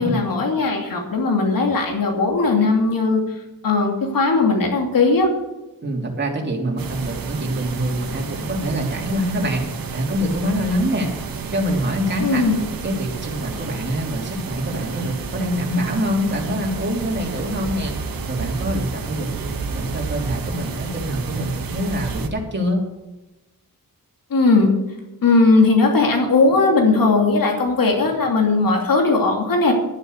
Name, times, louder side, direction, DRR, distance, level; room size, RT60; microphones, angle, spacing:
voice 1, 0.0-3.2 3.6-5.3 12.2-12.6 24.3-24.7 25.2-29.7, left 3 dB, 70° left, 2 dB, 2.8 m, -18 dB
voice 2, 5.8-9.7 9.9-11.1 11.5-12.4 12.8-17.9 18.2-22.8, equal, 30° right, 0 dB, 3.1 m, -25 dB
sound 1, 6.8-22.3, right 4 dB, 75° right, 1.5 m, -31 dB
11.0 x 10.5 x 6.6 m, 1.0 s
wide cardioid pair, 135°, 35 cm